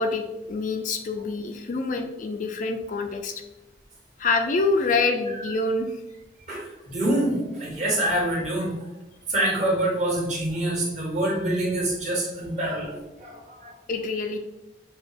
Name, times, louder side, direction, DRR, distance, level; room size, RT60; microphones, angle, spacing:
voice 1, 0.0-3.4 4.2-6.0 13.9-14.4, left 3 dB, 45° left, 5 dB, 0.4 m, -26 dB
voice 2, 6.5-8.7 9.3-13.7, right 1 dB, 40° right, -3 dB, 1.5 m, -26 dB
6.0 x 2.4 x 3.3 m, 0.99 s
head